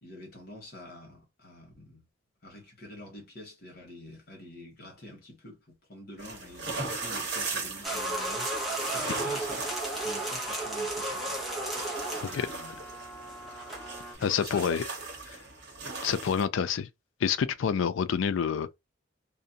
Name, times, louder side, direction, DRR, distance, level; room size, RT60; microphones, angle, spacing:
voice 1, 0.0-2.0 2.4-8.5 8.9-9.7 10.0-11.4 12.2-12.8 14.2-14.7, left 1 dB, 50° left, 1.1 m, -47 dB
sound 1, 6.2-16.4, right 3 dB, 60° right, 0.9 m, -39 dB
sound 2, 7.8-14.1, right 1 dB, ahead, 0.6 m, -34 dB
voice 2, 14.2-14.8 16.0-16.9 17.2-18.8, left 7 dB, 80° left, 0.4 m, -27 dB
2.5 x 2.1 x 2.7 m
head